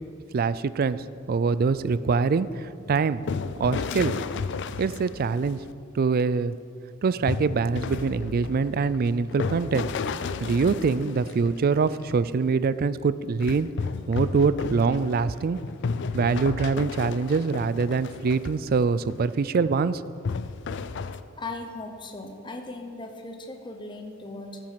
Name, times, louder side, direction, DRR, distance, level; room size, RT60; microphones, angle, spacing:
voice 1, 0.3-1.0 1.3-3.2 3.6-4.2 4.8-5.6 5.9-6.5 7.0-9.9 10.4-13.7 14.1-15.6 16.1-20.0, right 5 dB, 45° right, 16 dB, 0.4 m, -24 dB
sound 1, 2.8-5.7 7.3-11.9 13.4-18.7 19.1-19.3 20.2-21.2, left 5 dB, 60° left, 0.4 m, -33 dB
voice 2, 21.4-24.6, left 2 dB, 25° left, 4 dB, 0.9 m, -38 dB
13.5 x 7.5 x 5.8 m, 2.3 s
head